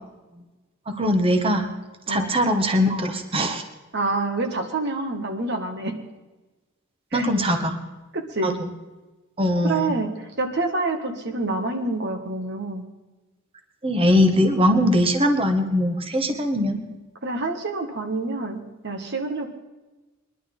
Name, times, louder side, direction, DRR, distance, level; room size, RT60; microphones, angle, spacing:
voice 1, 0.9-1.7 2.1-3.6 7.1-7.8 8.4-8.7 9.4-9.9 13.8-16.9, equal, 25° right, 6 dB, 1.4 m, -21 dB
voice 2, 3.9-6.0 7.1-7.3 8.1-8.5 9.6-12.8 17.2-19.5, right 2 dB, 50° right, 4 dB, 1.7 m, -27 dB
22.5 x 11.5 x 3.9 m, 1.2 s
head